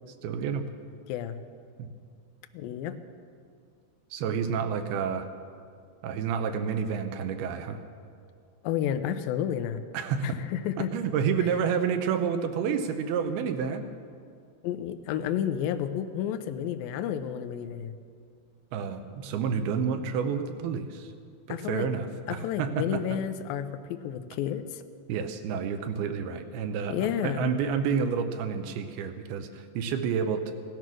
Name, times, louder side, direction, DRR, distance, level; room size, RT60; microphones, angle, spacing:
voice 1, 0.2-0.6 1.8-1.9 4.1-5.3 6.0-7.8 9.9-10.4 10.8-13.8 18.7-21.1 21.5-23.0 25.1-30.5, right 6 dB, 75° right, 8 dB, 2.5 m, -29 dB
voice 2, 1.1-1.4 2.5-3.0 8.6-9.8 10.2-10.9 14.6-17.9 21.5-21.9 22.3-24.8 26.9-27.6, left 9 dB, 90° left, 9 dB, 2.0 m, -31 dB
17.5 x 12.0 x 6.2 m, 2.2 s
omnidirectional pair, 4.9 m